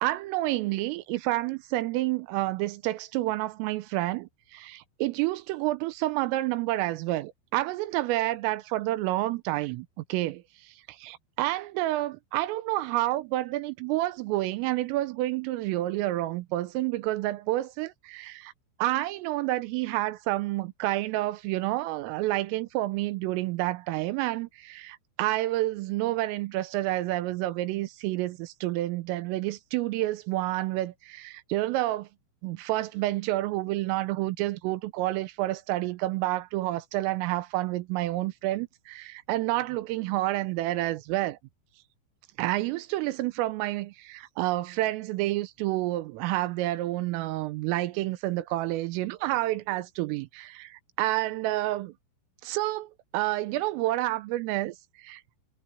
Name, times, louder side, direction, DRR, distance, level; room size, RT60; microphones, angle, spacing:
voice 1, 0.0-18.5 18.8-32.1 32.4-41.4 42.4-51.9 52.4-55.2, right 17 dB, 85° right, 3.4 m, -29 dB
omnidirectional pair, 5.9 m